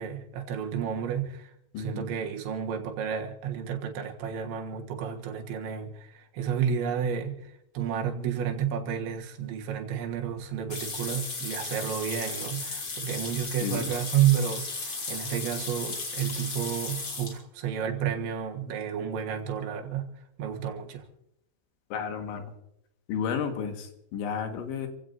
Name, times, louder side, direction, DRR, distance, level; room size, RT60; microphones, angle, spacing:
voice 1, 0.0-1.5 1.8-21.1, right 9 dB, 75° right, 3.8 m, -31 dB
voice 2, 1.7-2.1 13.6-13.9 21.9-22.5 23.1-24.9, left 7 dB, 80° left, 3.9 m, -32 dB
sound 1, 10.7-17.4, left 3 dB, 35° left, 3.0 m, -35 dB
29.0 x 16.0 x 2.7 m
omnidirectional pair, 5.4 m